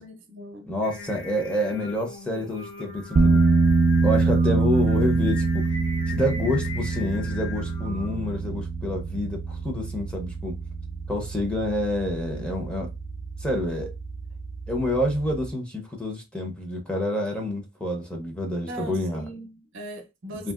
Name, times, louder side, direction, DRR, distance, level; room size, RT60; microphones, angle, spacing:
voice 1, 0.0-0.7 18.7-20.5, right 2 dB, 65° right, 0.7 m, -39 dB
voice 2, 0.7-3.4 4.0-5.7 6.1-10.5 11.1-12.9 13.4-13.9 14.7-19.2 20.3-20.5, left 1 dB, 5° left, 0.6 m, -28 dB
Singing, 0.8-8.4, left 4 dB, 60° left, 0.7 m, -40 dB
sound 1, 3.1-15.5, right 3 dB, 40° right, 0.3 m, -25 dB
2.7 x 2.7 x 2.3 m
head